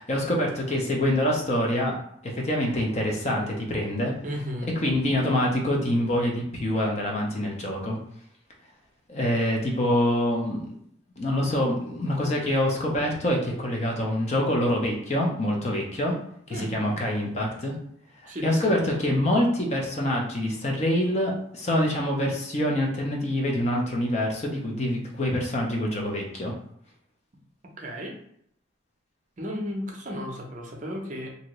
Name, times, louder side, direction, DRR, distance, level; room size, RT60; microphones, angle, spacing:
voice 1, 0.0-1.9 2.2-4.1 4.8-8.0 9.1-10.8 11.2-16.1 16.5-17.8 18.2-26.5, left 1 dB, 35° left, -1 dB, 0.6 m, -25 dB
voice 2, 4.2-4.7 16.5-16.7 18.3-18.7 27.8-28.2 29.4-31.3, equal, 40° right, 0 dB, 0.6 m, -34 dB
2.7 x 2.5 x 3.0 m, 0.70 s
head